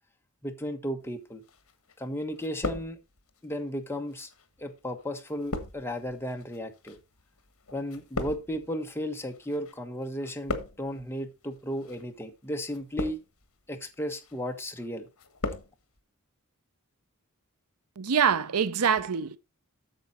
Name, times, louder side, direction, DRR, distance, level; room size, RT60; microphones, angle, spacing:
voice 1, 0.4-1.4 2.0-3.0 3.4-4.3 4.6-7.0 7.7-13.2 13.7-15.1, equal, 10° left, 1.3 m, -34 dB
sound 1, 1.5-2.1 2.3-3.4 4.1-9.7 10.0-11.0 11.7-12.0 12.7-13.5 13.9-14.4 14.8-15.7 16.0-16.1, left 2 dB, 65° left, 1.5 m, -37 dB
voice 2, 18.0-19.4, right 7 dB, 80° right, 0.6 m, -25 dB
8.9 x 7.0 x 4.3 m
head